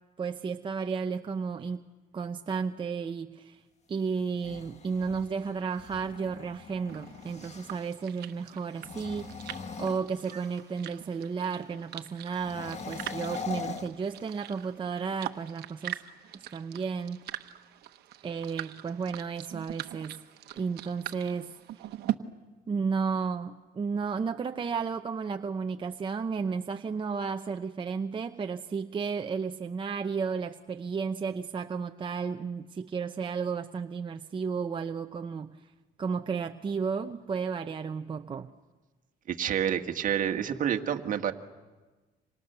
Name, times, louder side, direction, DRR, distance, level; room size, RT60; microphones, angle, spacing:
voice 1, 0.2-1.9 2.1-3.6 3.9-9.4 9.8-16.0 16.5-17.2 18.2-20.2 20.5-21.5 22.7-35.6 36.0-38.5, right 5 dB, 30° right, 6 dB, 0.8 m, -33 dB
sound 1, 4.2-8.0 8.7-10.7 12.3-14.6, left 5 dB, 40° left, 1.7 m, -42 dB
sound 2, 6.9-22.1, right 13 dB, 75° right, 1.1 m, -42 dB
voice 2, 39.3-41.3, right 9 dB, 50° right, 6 dB, 1.7 m, -28 dB
29.5 x 26.5 x 6.8 m, 1.2 s
cardioid pair, 110°, 17 cm